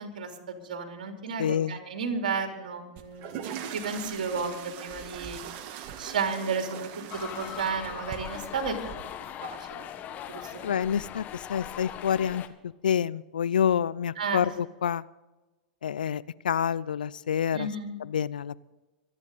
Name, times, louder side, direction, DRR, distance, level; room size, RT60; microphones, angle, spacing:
voice 1, 0.0-5.4 6.0-8.7 9.4-9.8 10.3-10.8 14.2-14.5 17.5-17.9, right 5 dB, 75° right, 3 dB, 3.3 m, -33 dB
voice 2, 1.4-1.8 10.6-11.2 11.5-12.4 12.8-15.0 15.8-17.7 18.1-18.6, left 8 dB, 85° left, 20 dB, 0.5 m, -27 dB
sound 1, 3.0-9.0, right 9 dB, 50° right, 1.7 m, -41 dB
sound 2, 7.1-12.5, left 10 dB, 35° left, 1.4 m, -40 dB
25.5 x 9.8 x 4.0 m, 1.1 s
hypercardioid pair, 100°, 5 cm